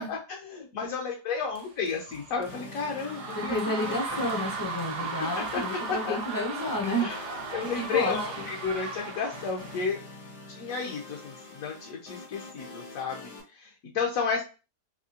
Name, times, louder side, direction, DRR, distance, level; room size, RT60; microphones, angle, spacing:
voice 1, 0.0-4.3 5.0-5.6 5.9-6.2 7.0-7.2 7.5-10.0 10.6-14.4, left 5 dB, 65° left, -1 dB, 1.0 m, -32 dB
sound 1, 1.5-9.8, right 4 dB, 65° right, 0.7 m, -37 dB
sound 2, 2.5-13.4, left 3 dB, 80° left, 1.8 m, -46 dB
voice 2, 3.4-7.1 7.8-8.5, equal, 25° left, 0 dB, 0.4 m, -31 dB
3.6 x 2.8 x 2.8 m, 0.32 s
omnidirectional pair, 1.7 m